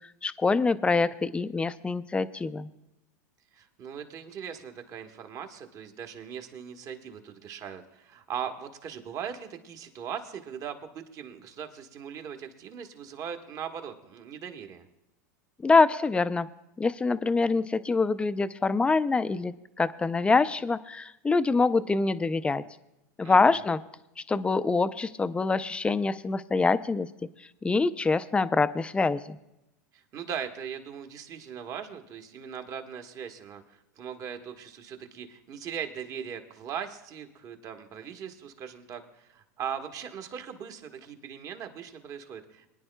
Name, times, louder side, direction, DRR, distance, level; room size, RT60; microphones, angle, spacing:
voice 1, 0.2-2.7 15.6-16.5 16.8-22.6 23.2-23.8 24.3-27.1 27.6-29.4, left 4 dB, 10° left, 13 dB, 0.4 m, -25 dB
voice 2, 3.5-14.8 23.2-23.6 29.9-42.7, right 8 dB, 40° right, 6 dB, 1.2 m, -39 dB
23.0 x 9.9 x 2.2 m, 0.89 s
hypercardioid pair, 105°, 9 cm